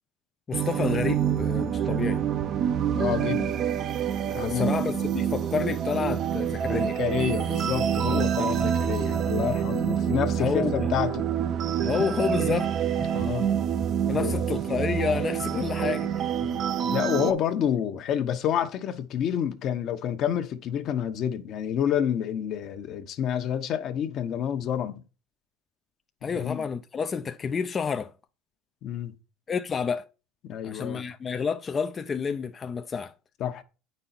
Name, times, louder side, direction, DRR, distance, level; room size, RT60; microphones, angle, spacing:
voice 1, 0.5-2.2 4.3-7.0 8.4-8.8 10.4-10.9 11.8-12.7 14.1-16.3 26.2-28.1 29.5-30.0 30.6-33.1, left 6 dB, 25° left, 0.5 m, -29 dB
sound 1, 0.5-17.3, right 9 dB, 40° right, 0.6 m, -27 dB
voice 2, 2.9-3.6 4.3-4.7 6.8-11.3 13.1-13.5 14.1-14.4 16.4-25.0 26.3-26.6 28.8-29.1 30.5-31.1 33.4-33.6, left 9 dB, 50° left, 1.0 m, -29 dB
8.8 x 5.4 x 4.3 m
supercardioid pair, 130°, 0 cm